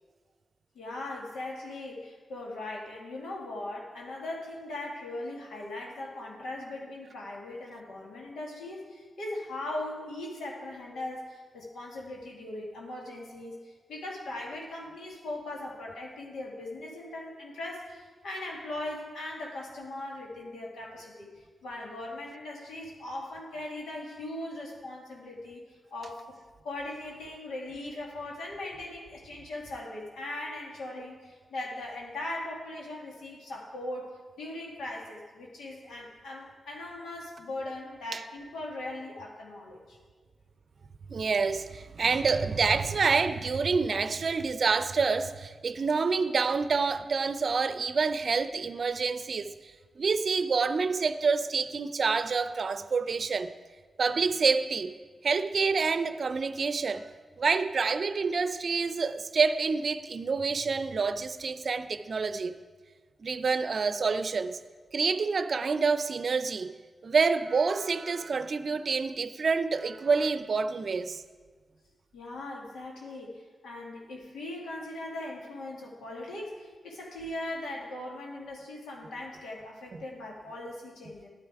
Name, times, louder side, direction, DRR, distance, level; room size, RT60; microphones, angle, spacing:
voice 1, 0.7-21.3 21.6-25.6 25.9-26.3 26.6-40.0 72.1-81.3, left 1 dB, 85° left, 2.1 m, -39 dB
voice 2, 41.1-49.5 50.0-53.5 54.0-54.9 55.2-57.1 57.4-62.5 63.2-64.6 64.9-66.7 67.0-71.2, right 4 dB, 60° right, 0.6 m, -27 dB
12.0 x 9.5 x 4.7 m
supercardioid pair, 40°, 0 cm